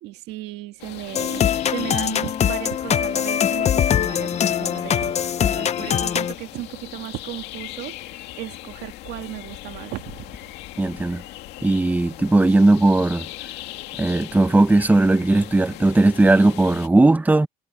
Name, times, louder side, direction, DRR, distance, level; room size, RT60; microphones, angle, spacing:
voice 1, 0.0-10.2, right 17 dB, 85° right, 1.9 m, -35 dB
sound 1, 0.8-16.9, left 15 dB, 85° left, 2.4 m, -39 dB
sound 2, 1.1-6.3, left 9 dB, 40° left, 0.7 m, -22 dB
voice 2, 10.8-11.2 11.6-13.3 14.0-17.5, right 2 dB, 10° right, 0.8 m, -17 dB
cardioid pair, 110°, 17 cm